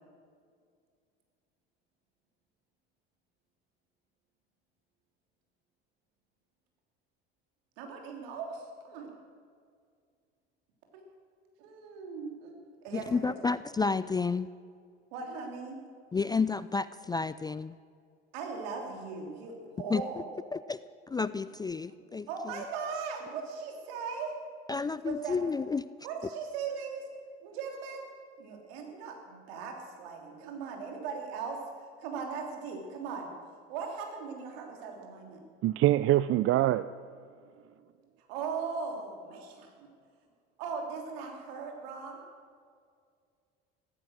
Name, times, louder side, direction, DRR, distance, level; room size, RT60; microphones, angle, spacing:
voice 1, 7.8-9.1 10.9-11.0 11.6-12.5 12.8-13.4 15.1-15.8 18.3-20.3 22.3-24.4 25.0-25.4 26.0-27.1 27.4-28.1 28.4-31.6 32.0-33.3 33.7-35.4 38.3-39.7 40.6-42.2, right 5 dB, 70° right, 3.2 m, -38 dB
voice 2, 12.9-14.5 16.1-17.8 19.9-20.0 20.5-20.8 21.1-22.6 24.7-25.9, left 4 dB, 15° left, 0.3 m, -31 dB
voice 3, 35.6-36.8, right 14 dB, 45° right, 0.5 m, -24 dB
15.0 x 13.5 x 6.3 m
hypercardioid pair, 65°, 30 cm